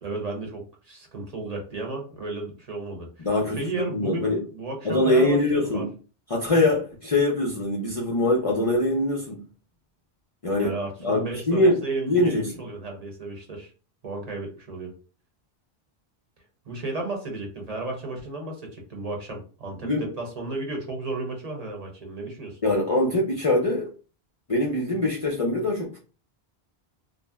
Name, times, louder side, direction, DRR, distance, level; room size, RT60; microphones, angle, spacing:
voice 1, 0.0-3.3 3.6-5.8 10.5-13.7 14.0-14.9 16.7-22.6, right 2 dB, 40° right, 0.8 m, -33 dB
voice 2, 3.2-3.6 3.9-4.4 4.8-5.9 6.3-9.4 10.4-10.7 11.0-12.5 19.8-20.1 22.6-23.9 24.5-26.1, left 1 dB, 40° left, 0.5 m, -23 dB
2.5 x 2.0 x 3.4 m
omnidirectional pair, 1.1 m